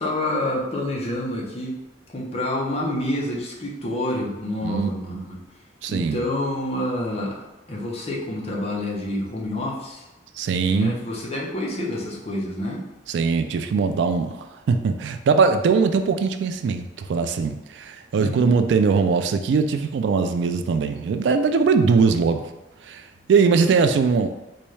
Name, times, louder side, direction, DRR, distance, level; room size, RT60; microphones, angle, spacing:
voice 1, 0.0-1.8 2.1-5.4 5.9-7.4 7.7-10.1 10.7-12.9 18.1-18.5, left 1 dB, 35° left, -3 dB, 0.8 m, -28 dB
voice 2, 5.8-6.2 10.4-10.9 13.1-22.5 22.8-24.3, right 5 dB, 75° right, 8 dB, 0.3 m, -21 dB
4.0 x 2.3 x 3.2 m, 1.0 s
head